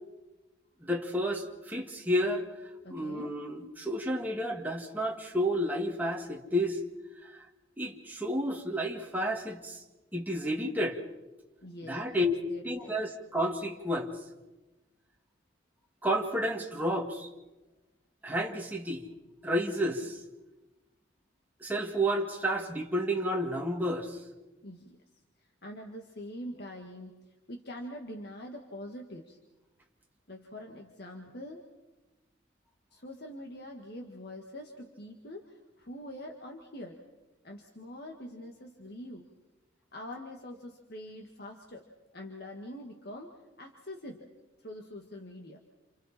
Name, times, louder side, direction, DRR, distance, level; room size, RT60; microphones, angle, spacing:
voice 1, 0.8-2.5 2.9-6.8 7.2-7.3 7.8-9.8 10.1-11.0 11.8-12.3 12.6-14.1 16.0-17.3 18.2-19.1 19.4-20.2 21.6-24.2, equal, 10° right, -1 dB, 2.1 m, -31 dB
voice 2, 2.8-3.3 11.6-12.2 12.5-13.0 24.6-25.0 25.4-29.4 30.3-31.6 32.9-37.0 37.4-39.3 39.9-41.9 42.1-44.3 44.6-45.6, left 1 dB, 50° left, 2 dB, 1.8 m, -44 dB
29.0 x 28.5 x 4.4 m, 1.1 s
head